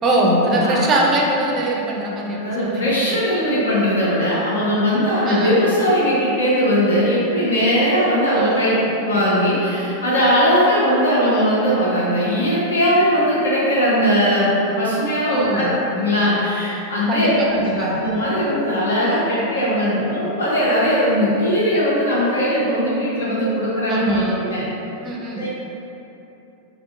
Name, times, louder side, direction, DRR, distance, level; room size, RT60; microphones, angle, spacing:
voice 1, 0.0-2.9 5.3-5.6 8.3-8.9 15.3-15.8 17.1-18.0 23.9-24.4 25.0-25.5, right 1 dB, 25° right, -1 dB, 0.5 m, -22 dB
voice 2, 2.3-8.7 9.0-24.7 25.3-25.5, equal, 70° left, -8 dB, 1.0 m, -19 dB
3.6 x 3.1 x 2.6 m, 2.9 s
figure-of-eight pair, 90°, 0 cm